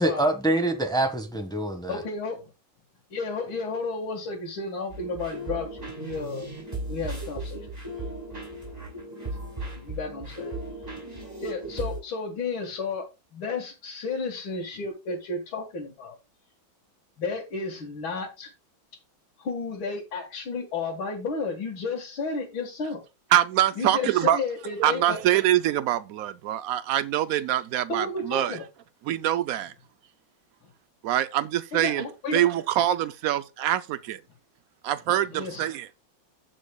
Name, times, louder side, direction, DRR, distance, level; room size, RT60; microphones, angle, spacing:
voice 1, 0.0-2.0, right 1 dB, ahead, 1.1 m, -25 dB
voice 2, 1.9-2.5 3.1-6.5 6.9-7.7 9.8-10.5 11.4-16.2 17.2-18.5 19.4-23.0 23.8-25.2 27.9-28.6 31.7-32.4 35.3-35.7, left 4 dB, 80° left, 2.6 m, -32 dB
sound 1, 4.9-12.0, right 1 dB, 20° right, 6.6 m, -36 dB
voice 3, 23.3-24.4 24.8-28.6 29.0-29.7 31.0-32.0 32.3-34.2 34.8-35.9, right 12 dB, 85° right, 0.7 m, -24 dB
15.5 x 6.2 x 2.3 m
omnidirectional pair, 2.2 m